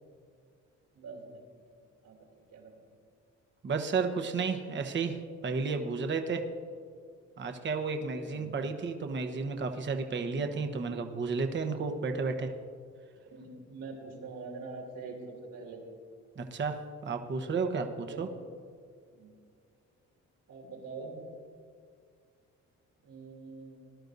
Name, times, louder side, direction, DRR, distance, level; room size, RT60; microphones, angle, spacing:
voice 1, 0.9-1.8 2.0-2.7 7.8-8.5 13.2-15.8 18.0-18.3 19.1-19.3 20.5-21.2 23.0-23.8, right 4 dB, 80° right, -1 dB, 3.3 m, -45 dB
voice 2, 3.6-6.4 7.4-12.5 16.4-18.3, right 4 dB, 40° right, 5 dB, 1.0 m, -32 dB
19.5 x 11.5 x 2.7 m, 2.2 s
cardioid pair, 90°, 30 cm